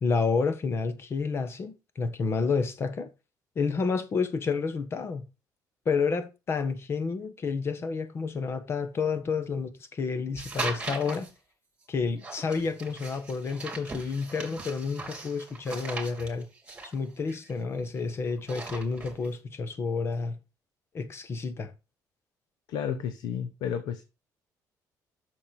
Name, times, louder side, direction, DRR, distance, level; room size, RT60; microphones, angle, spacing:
voice 1, 0.0-3.1 3.5-5.2 5.8-11.3 11.9-16.5 16.9-20.4 20.9-21.7, left 4 dB, 35° left, 1.3 m, -30 dB
sound 1, 10.3-11.3 12.2-18.0 18.3-19.3, right 3 dB, 15° right, 2.7 m, -39 dB
voice 2, 22.7-24.0, left 8 dB, 90° left, 0.9 m, -32 dB
7.4 x 6.7 x 5.8 m
cardioid pair, 150°, 7 cm